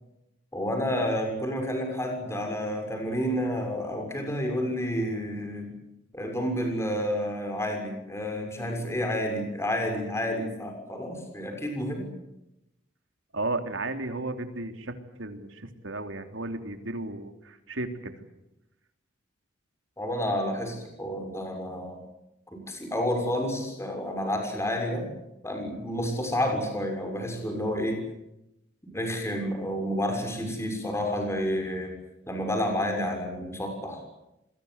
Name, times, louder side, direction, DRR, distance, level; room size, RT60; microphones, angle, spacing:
voice 1, 0.5-5.7 6.1-12.1 20.0-22.0 22.5-25.1 25.4-28.0 28.9-32.0 32.3-34.0, equal, 15° left, 4 dB, 6.6 m, -30 dB
voice 2, 13.3-14.9 15.2-18.1, right 2 dB, 90° right, 6 dB, 3.3 m, -34 dB
27.5 x 22.0 x 8.2 m, 0.87 s
head